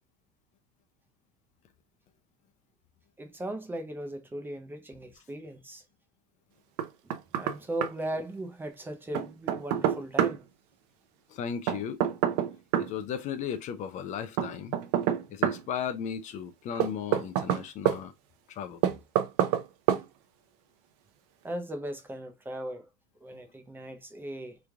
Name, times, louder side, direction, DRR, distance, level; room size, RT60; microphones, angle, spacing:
voice 1, 3.2-5.8 7.0-7.1 7.4-10.4 21.4-22.9 23.2-24.6, right 1 dB, 10° right, 0.6 m, -38 dB
Knock, 6.8-7.6 7.8-7.9 9.1-10.4 11.7-12.9 14.4-15.6 16.8-18.0 18.8-19.6 19.9-20.0, right 11 dB, 70° right, 0.6 m, -26 dB
voice 2, 11.3-12.0 12.8-14.7 15.3-18.1 18.5-18.8, left 8 dB, 35° left, 0.5 m, -35 dB
3.2 x 2.4 x 3.4 m
supercardioid pair, 145°, 21 cm